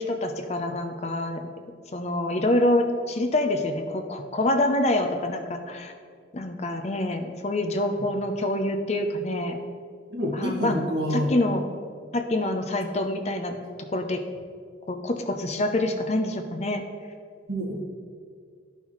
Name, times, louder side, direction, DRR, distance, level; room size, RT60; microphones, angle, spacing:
voice 1, 0.0-1.4 1.9-5.9 6.3-9.6 10.3-10.8 11.1-11.6 12.1-13.5 13.9-14.2 14.9-16.8 17.7-17.8, left 1 dB, 35° left, 6 dB, 0.5 m, -26 dB
voice 2, 10.1-11.3 17.5-17.8, equal, 65° right, -3 dB, 1.7 m, -27 dB
12.0 x 5.6 x 3.1 m, 2.1 s
head